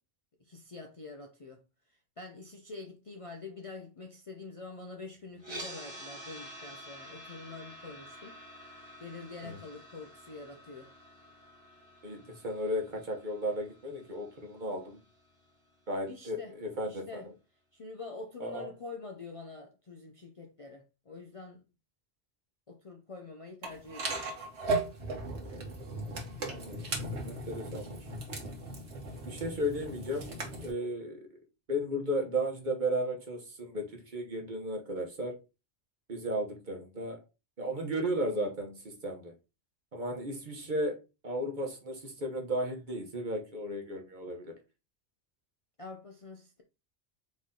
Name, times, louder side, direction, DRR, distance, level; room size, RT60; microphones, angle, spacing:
voice 1, 0.4-1.6 2.2-8.4 9.0-10.9 16.1-16.5 16.8-17.3 17.7-21.6 22.7-24.3 45.8-46.6, left 3 dB, 40° left, 0.5 m, -46 dB
sound 1, 5.4-15.5, equal, 25° right, 1.4 m, -49 dB
voice 2, 12.0-15.0 15.9-17.3 18.4-18.7 25.3-25.7 26.5-26.8 27.2-28.1 29.3-30.3 30.6-31.3 31.7-35.4 36.1-37.2 37.6-39.3 39.9-41.0 41.2-44.5, equal, 45° right, 1.2 m, -34 dB
sound 2, 23.6-30.7, right 2 dB, 75° right, 1.5 m, -37 dB
4.1 x 3.1 x 3.7 m
omnidirectional pair, 1.2 m